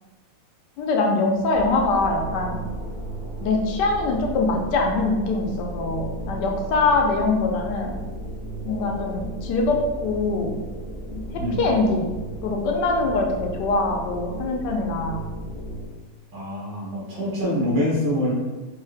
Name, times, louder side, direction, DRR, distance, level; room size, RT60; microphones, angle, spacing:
voice 1, 0.8-2.6 3.4-7.9 8.6-10.6 11.1-11.2 11.6-12.1 12.4-15.2, left 3 dB, 75° left, 1 dB, 1.2 m, -23 dB
sound 1, 1.5-15.8, right 1 dB, 55° right, 1.3 m, -34 dB
voice 2, 16.3-18.3, equal, 75° right, -7 dB, 2.1 m, -25 dB
4.6 x 2.4 x 3.2 m, 1.2 s
omnidirectional pair, 1.9 m